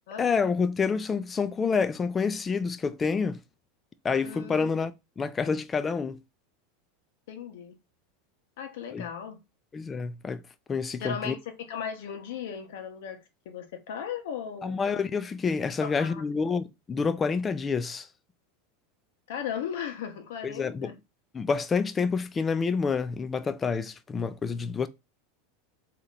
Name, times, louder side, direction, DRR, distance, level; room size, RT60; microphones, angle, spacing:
voice 1, 0.2-3.4 4.0-6.2 8.9-9.1 9.7-10.4 10.7-11.3 14.6-18.1 20.4-20.9 21.3-24.9, left 5 dB, 20° left, 0.4 m, -28 dB
voice 2, 4.2-4.7 7.3-7.7 8.6-9.4 11.0-14.8 15.8-16.2 19.3-21.0, left 7 dB, 75° left, 1.1 m, -37 dB
3.8 x 2.9 x 4.1 m
supercardioid pair, 145°, 0 cm